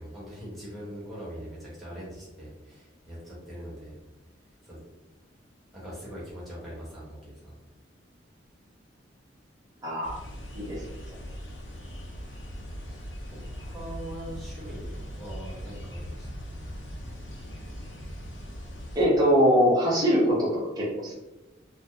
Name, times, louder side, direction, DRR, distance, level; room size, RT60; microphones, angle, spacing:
voice 1, 0.0-3.9 4.6-4.8 5.7-7.5 13.7-16.3, equal, ahead, -8 dB, 1.0 m, -41 dB
voice 2, 9.8-10.2 10.5-10.8 19.0-21.1, equal, 20° right, -6 dB, 0.6 m, -22 dB
sound 1, 10.0-19.0, equal, 80° left, 0.6 m, -40 dB
2.3 x 2.1 x 2.8 m, 1.0 s
head